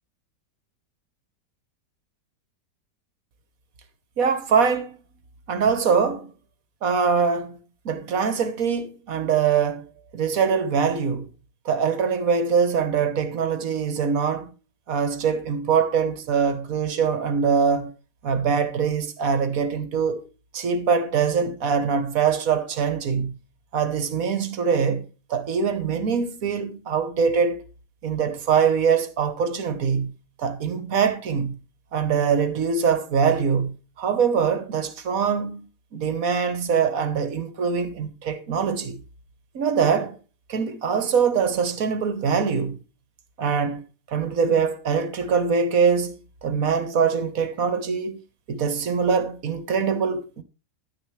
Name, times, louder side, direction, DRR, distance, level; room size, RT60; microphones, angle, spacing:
voice 1, 4.2-5.0 5.5-6.3 6.8-7.6 7.8-9.9 10.1-11.3 11.6-14.5 14.9-17.9 18.2-20.2 20.5-23.3 23.7-27.7 28.0-30.1 30.4-31.6 31.9-39.0 39.5-40.2 40.5-42.8 43.4-48.2 48.5-50.4, right 6 dB, 55° right, 1.4 m, -23 dB
10.5 x 9.9 x 3.2 m
omnidirectional pair, 1.9 m